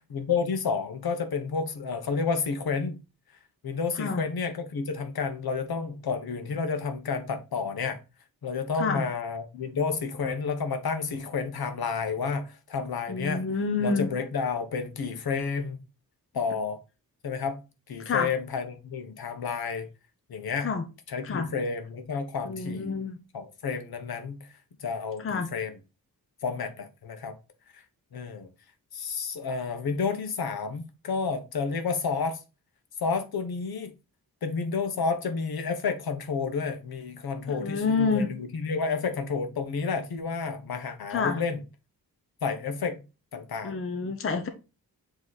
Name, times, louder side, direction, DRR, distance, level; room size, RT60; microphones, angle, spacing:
voice 1, 0.1-3.0 3.6-8.0 8.4-13.5 13.8-15.8 16.3-16.8 17.2-17.6 17.9-19.9 20.3-20.7 21.1-23.0 23.3-25.8 26.4-27.3 27.7-27.8 28.1-28.5 28.9-32.4 33.0-33.9 34.4-41.6 42.4-43.0 43.3-43.8, left 5 dB, 70° left, 1.1 m, -30 dB
voice 2, 13.1-14.1 18.0-18.3 20.6-20.8 21.2-21.5 22.5-23.2 25.2-25.5 37.5-38.3 41.1-41.4 43.6-44.5, left 4 dB, 35° left, 0.7 m, -28 dB
7.5 x 3.2 x 4.0 m
wide cardioid pair, 170°, 38 cm